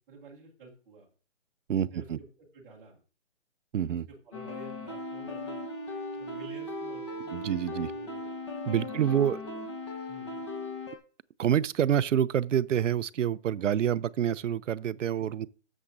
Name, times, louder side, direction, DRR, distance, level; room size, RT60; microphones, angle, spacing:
voice 1, 0.1-1.1 1.7-2.3 2.5-3.0 3.9-5.6 6.1-8.3 8.9-9.6 10.1-10.4 13.6-14.0 15.2-15.4, right 3 dB, 5° right, 0.9 m, -50 dB
voice 2, 1.7-2.2 3.7-4.1 7.3-7.9 8.7-9.4 11.4-15.5, right 9 dB, 80° right, 0.6 m, -27 dB
sound 1, 4.3-11.0, left 2 dB, 25° left, 1.0 m, -38 dB
13.0 x 7.2 x 2.6 m
hypercardioid pair, 170°, 37 cm